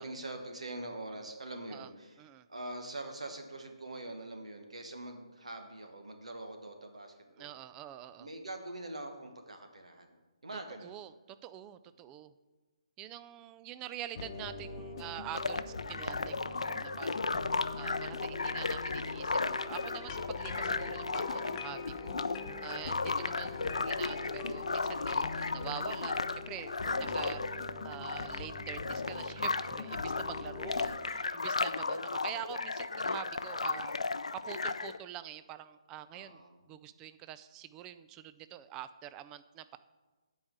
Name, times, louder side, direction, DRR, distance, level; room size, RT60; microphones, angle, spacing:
voice 1, 0.0-7.6 8.2-10.1 10.4-11.0 26.8-27.3 30.6-30.9 33.8-33.9 36.1-36.6, right 2 dB, 80° right, 4 dB, 1.4 m, -44 dB
voice 2, 7.4-8.3 10.8-11.1 11.4-12.3 13.0-17.5 17.7-22.1 22.6-27.4 27.8-33.9 34.5-36.4 36.7-39.8, right 12 dB, 15° right, 12 dB, 0.3 m, -46 dB
sound 1, 14.1-31.0, left 4 dB, 45° left, 0.9 m, -43 dB
sound 2, 15.3-35.0, left 3 dB, 85° left, 0.5 m, -35 dB
sound 3, 19.7-25.7, left 6 dB, 25° left, 1.0 m, -48 dB
9.1 x 4.8 x 7.4 m, 1.2 s
figure-of-eight pair, 150°, 3 cm